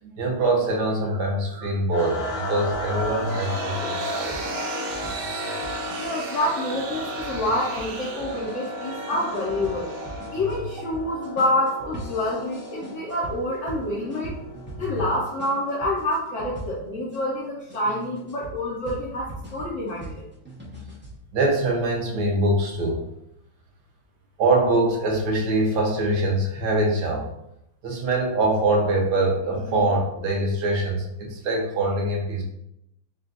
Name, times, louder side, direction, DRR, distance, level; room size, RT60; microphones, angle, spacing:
voice 1, 0.0-4.5 6.0-6.1 14.8-15.0 21.3-23.0 24.4-27.3 27.8-32.4, right 2 dB, 60° right, -1 dB, 1.4 m, -23 dB
sound 1, 1.9-16.0, left 1 dB, 85° left, 1.6 m, -34 dB
sound 2, 2.7-17.2 17.7-21.2, right 1 dB, 15° right, 0.3 m, -41 dB
sound 3, 2.9-10.8, right 4 dB, 90° right, 1.4 m, -37 dB
voice 2, 6.0-9.9 10.3-14.3 14.8-20.2, left 1 dB, 60° left, -7 dB, 0.8 m, -27 dB
4.2 x 2.3 x 3.9 m, 0.81 s
omnidirectional pair, 2.2 m